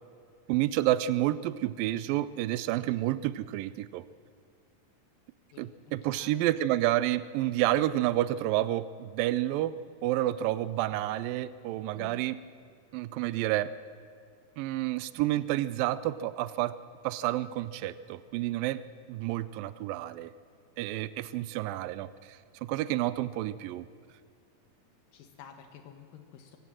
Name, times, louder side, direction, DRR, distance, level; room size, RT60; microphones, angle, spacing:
voice 1, 0.5-4.0 5.6-12.4 12.9-13.7 14.6-16.7 17.0-18.8 19.1-20.3 20.8-23.9, right 14 dB, 90° right, 16 dB, 2.4 m, -30 dB
voice 2, 11.9-12.3 21.7-21.8 25.1-26.6, left 9 dB, 85° left, 6 dB, 3.1 m, -51 dB
24.0 x 18.0 x 7.5 m, 2.4 s
omnidirectional pair, 3.9 m